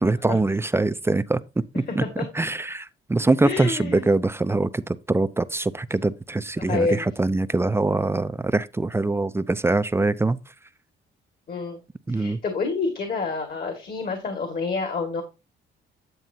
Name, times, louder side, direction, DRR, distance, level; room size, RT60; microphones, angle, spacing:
voice 1, 0.0-1.4 2.0-2.1 2.3-10.4 12.1-12.4, right 2 dB, 10° right, 0.4 m, -23 dB
voice 2, 1.9-2.2 3.4-4.0 6.6-7.1 11.5-11.8 12.1-15.2, left 4 dB, 50° left, 2.0 m, -28 dB
9.1 x 7.8 x 2.8 m
cardioid pair, 90°, 20 cm